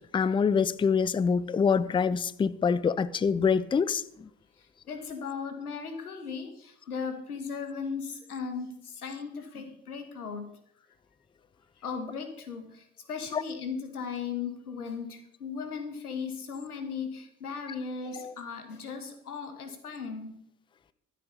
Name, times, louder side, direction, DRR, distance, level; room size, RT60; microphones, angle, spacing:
voice 1, 0.1-4.0 13.3-13.4 18.2-18.3, left 6 dB, 10° left, 0.5 m, -25 dB
voice 2, 4.9-10.5 11.8-20.4, left 5 dB, 85° left, 2.0 m, -37 dB
24.5 x 8.2 x 4.0 m
figure-of-eight pair, 65°, 44 cm